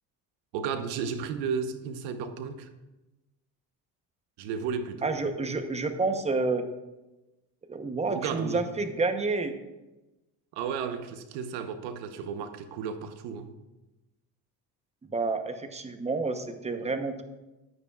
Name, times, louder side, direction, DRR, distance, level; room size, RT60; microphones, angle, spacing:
voice 1, 0.5-2.7 4.4-5.2 8.1-8.7 10.5-13.5, right 6 dB, 85° right, 9 dB, 1.0 m, -33 dB
voice 2, 5.0-6.6 7.7-9.5 15.1-17.2, right 3 dB, 15° right, 8 dB, 0.9 m, -29 dB
13.5 x 9.5 x 2.4 m, 1.0 s
cardioid pair, 110°, 40 cm